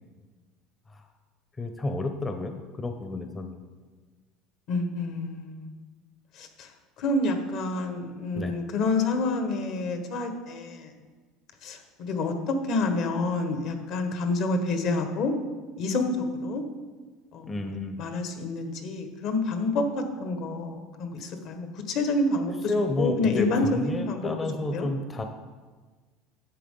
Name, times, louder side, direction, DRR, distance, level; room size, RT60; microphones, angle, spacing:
voice 1, 1.6-3.6 8.3-8.5 17.5-18.0 21.2-21.3 22.7-25.2, left 2 dB, 20° left, 6 dB, 0.8 m, -31 dB
voice 2, 4.7-5.7 6.3-6.7 7.0-10.9 11.6-15.3 15.8-16.6 17.3-17.5 18.0-22.7 23.0-24.3 24.7-24.9, left 2 dB, 60° left, 6 dB, 1.4 m, -28 dB
11.0 x 7.4 x 3.8 m, 1.4 s
supercardioid pair, 105°, 0 cm